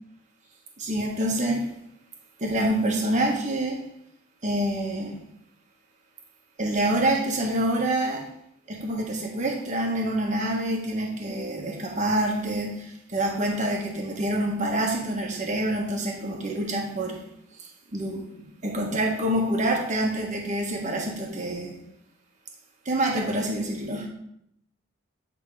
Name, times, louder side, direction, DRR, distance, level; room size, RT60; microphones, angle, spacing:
voice 1, 0.8-1.7 2.4-3.8 4.4-5.2 6.6-8.2 8.7-17.2 17.6-18.2 18.6-21.8 22.8-24.1, right 1 dB, 35° right, 0 dB, 1.3 m, -26 dB
8.2 x 3.7 x 4.8 m, 0.75 s
head